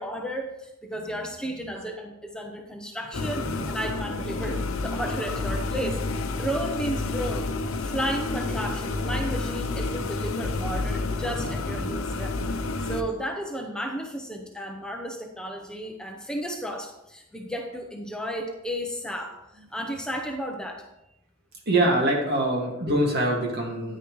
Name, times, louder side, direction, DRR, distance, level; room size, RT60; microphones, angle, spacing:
voice 1, 0.0-7.5 7.8-19.4 19.7-20.9, equal, 5° left, 2 dB, 0.8 m, -33 dB
sound 1, 3.1-13.0, left 3 dB, 80° left, 0.7 m, -29 dB
voice 2, 3.2-3.7 10.6-11.0 11.7-12.3 12.8-12.9 21.7-24.0, right 1 dB, 55° right, 0 dB, 2.1 m, -26 dB
9.7 x 9.6 x 3.2 m, 0.88 s
head